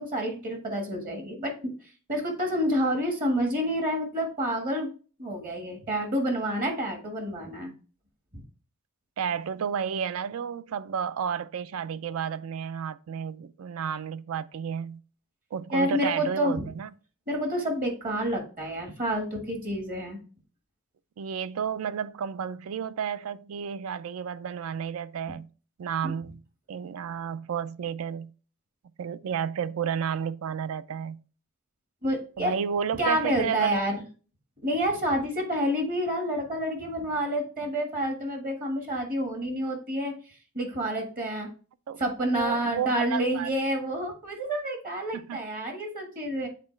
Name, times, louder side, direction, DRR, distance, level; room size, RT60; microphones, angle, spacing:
voice 1, 0.0-1.7 2.1-4.9 5.2-7.7 8.3-8.4 15.7-16.7 17.3-20.2 25.3-25.4 26.0-26.1 32.0-32.6 32.9-34.0 34.6-40.1 40.5-41.5 42.0-46.5, equal, 40° right, 1.5 m, -28 dB
voice 2, 9.2-15.0 15.5-16.9 21.2-25.5 25.8-26.4 26.7-28.3 29.0-31.2 32.4-33.8 41.9-42.0 42.3-43.5 45.1-45.4, right 7 dB, 75° right, 0.4 m, -32 dB
8.3 x 3.9 x 3.1 m
head